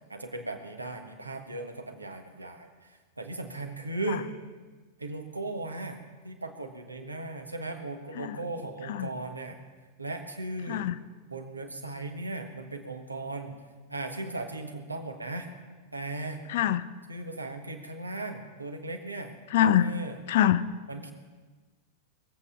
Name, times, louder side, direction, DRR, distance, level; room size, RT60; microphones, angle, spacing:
voice 1, 0.1-2.7 3.2-4.3 5.0-6.0 6.2-9.6 10.0-10.9 11.3-13.6 13.9-15.5 15.9-16.4 17.1-20.2 20.9-21.1, right 2 dB, 80° right, 4 dB, 1.5 m, -37 dB
voice 2, 16.5-16.8 19.5-19.9 20.3-20.6, left 11 dB, 55° left, 14 dB, 0.6 m, -24 dB
22.5 x 8.3 x 5.8 m, 1.3 s
figure-of-eight pair, 90°, 0 cm